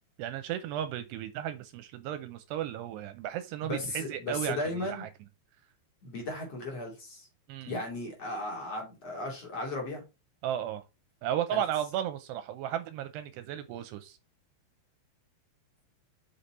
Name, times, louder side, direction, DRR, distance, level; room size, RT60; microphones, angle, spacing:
voice 1, 0.2-5.1 7.5-7.7 10.4-10.8 11.2-14.2, right 11 dB, 80° right, 2.6 m, -34 dB
voice 2, 3.6-5.0 6.0-7.3 7.7-10.0 11.5-11.6, left 2 dB, 40° left, 3.0 m, -36 dB
6.8 x 5.7 x 4.2 m
omnidirectional pair, 5.1 m